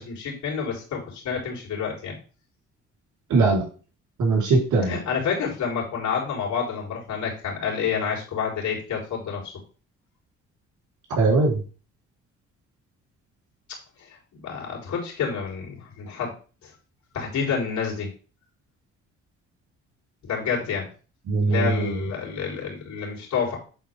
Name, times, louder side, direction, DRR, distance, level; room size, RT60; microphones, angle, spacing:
voice 1, 0.0-2.2 4.9-9.5 14.3-16.3 16.6-16.7 17.1-18.1 20.2-20.9 21.5-23.6, left 6 dB, 70° left, -3 dB, 4.2 m, -28 dB
voice 2, 3.3-3.6 4.2-5.0 11.2-11.6 21.3-21.9, right 3 dB, 75° right, -1 dB, 4.3 m, -20 dB
10.0 x 4.3 x 3.8 m, 0.36 s
cardioid pair, 90°, 30 cm